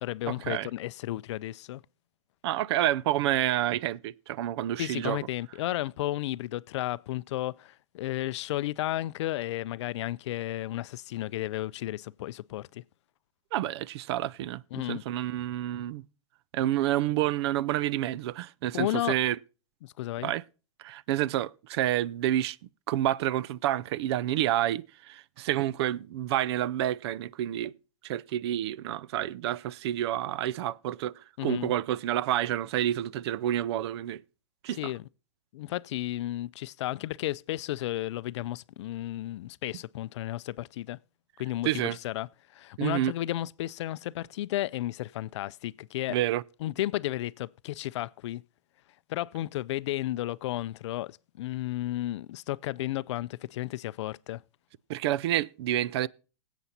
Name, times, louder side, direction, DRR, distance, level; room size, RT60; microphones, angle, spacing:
voice 1, 0.0-1.8 4.8-12.8 14.7-15.0 18.7-19.2 19.8-20.3 31.4-31.7 34.7-35.0 35.5-41.0 41.4-46.2 46.6-48.4 49.1-54.4, left 15 dB, 65° left, 0.4 m, -33 dB
voice 2, 2.4-5.2 13.5-14.6 14.9-16.0 16.5-19.4 20.2-20.4 20.8-22.6 22.9-27.7 28.0-34.2 34.6-34.9 41.6-42.0 42.8-43.1 46.1-46.4 54.9-56.1, right 13 dB, 55° right, 0.4 m, -29 dB
20.0 x 8.1 x 2.7 m
hypercardioid pair, 140°, 16 cm